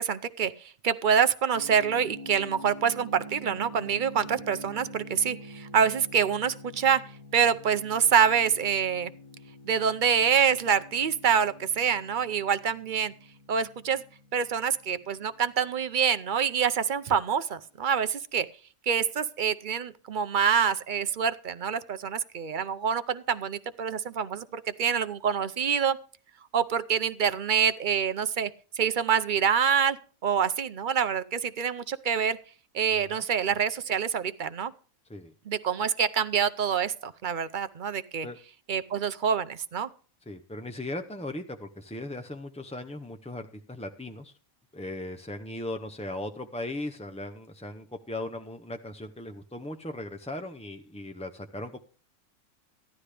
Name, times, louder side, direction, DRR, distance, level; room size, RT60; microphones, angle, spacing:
voice 1, 0.0-7.0 7.3-9.1 9.7-13.1 13.5-14.0 14.3-18.5 18.9-26.0 26.5-28.5 28.8-30.0 30.2-32.4 32.7-34.7 35.5-38.3 38.7-39.9, right 7 dB, 55° right, 12 dB, 0.6 m, -26 dB
sound 1, 1.5-16.3, equal, 80° left, 1.8 m, -46 dB
voice 2, 40.3-44.3 44.7-51.8, left 1 dB, 10° left, 6 dB, 0.4 m, -38 dB
15.0 x 11.5 x 3.4 m, 0.40 s
omnidirectional pair, 1.4 m